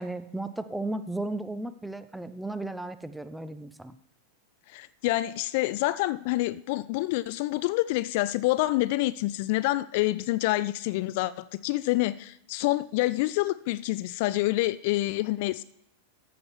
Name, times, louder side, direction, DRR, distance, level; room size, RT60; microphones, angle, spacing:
voice 1, 0.0-3.9, right 2 dB, 5° right, 12 dB, 0.6 m, -35 dB
voice 2, 4.7-15.6, left 18 dB, 50° left, 16 dB, 0.3 m, -27 dB
13.5 x 7.1 x 4.7 m, 0.75 s
figure-of-eight pair, 90°, 0 cm